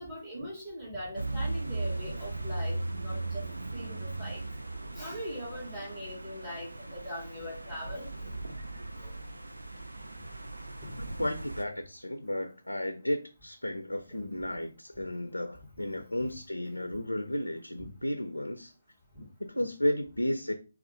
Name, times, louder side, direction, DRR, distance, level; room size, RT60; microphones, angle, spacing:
voice 1, 0.0-3.4 3.7-4.4 5.0-8.3 9.0-9.1 16.2-16.3 17.8-17.9 19.1-19.2, equal, 15° right, 2.0 m, -41 dB
sound 1, 1.1-11.6, right 2 dB, 80° right, 0.6 m, -38 dB
voice 2, 11.2-18.7 19.4-20.5, left 1 dB, 85° left, 0.5 m, -33 dB
3.6 x 2.4 x 4.2 m
figure-of-eight pair, 145°, 0 cm